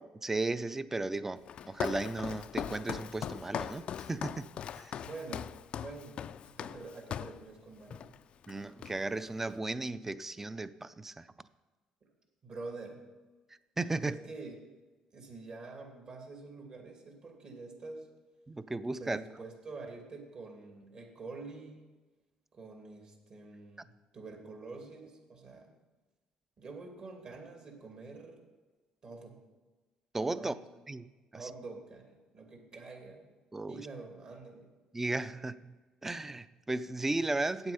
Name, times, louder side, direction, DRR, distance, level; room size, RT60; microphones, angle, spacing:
voice 1, 0.0-4.4 4.7-5.0 8.5-11.3 13.8-14.2 18.5-19.2 30.1-30.5 30.9-31.0 33.5-33.9 34.9-35.8 36.0-37.7, right 2 dB, 15° right, 15 dB, 0.4 m, -35 dB
Walk footsteps, 1.5-7.4 7.9-8.2 8.4-9.3, left 9 dB, 55° left, 0.3 m, -40 dB
voice 2, 5.0-5.5 5.8-8.2 12.0-12.1 12.4-13.1 14.0-14.5 15.1-18.1 19.0-21.8 22.5-25.7 26.6-28.4 29.0-29.4 30.3-30.7 31.3-33.3 33.7-34.7, right 3 dB, 45° right, 3 dB, 2.3 m, -47 dB
8.7 x 7.9 x 5.6 m, 1.2 s
cardioid pair, 90°, 2 cm